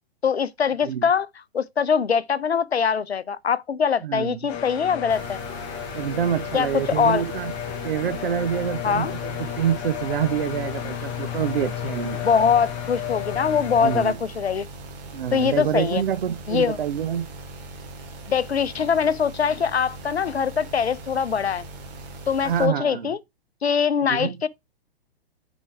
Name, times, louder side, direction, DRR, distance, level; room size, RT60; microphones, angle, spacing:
voice 1, 0.2-1.3 1.5-5.4 6.5-7.2 8.8-9.1 12.2-14.7 15.3-16.0 16.5-16.8 18.3-21.7 22.3-23.2 23.6-24.5, left 6 dB, 80° left, 0.6 m, -22 dB
voice 2, 4.0-4.5 5.9-7.5 7.8-12.2 13.8-14.2 15.1-17.2 22.4-23.1 24.1-24.4, right 9 dB, 60° right, 0.9 m, -26 dB
sound 1, 4.5-14.1, left 11 dB, 25° left, 0.9 m, -33 dB
sound 2, 5.1-22.7, right 2 dB, 45° right, 2.3 m, -40 dB
6.9 x 4.4 x 4.5 m
figure-of-eight pair, 115°, 31 cm